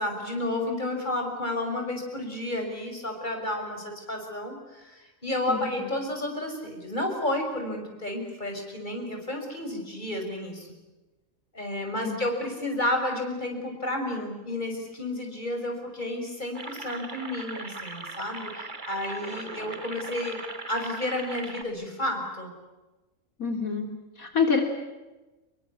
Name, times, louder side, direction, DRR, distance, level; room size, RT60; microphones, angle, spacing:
voice 1, 0.0-10.7 11.5-20.4 20.7-22.5, left 1 dB, 35° left, 3 dB, 6.4 m, -31 dB
sound 1, 16.5-21.6, right 2 dB, 35° right, 2.4 m, -39 dB
voice 2, 23.4-23.9 24.2-24.6, left 5 dB, 85° left, 4 dB, 3.6 m, -26 dB
27.0 x 23.0 x 8.5 m, 1.1 s
omnidirectional pair, 1.4 m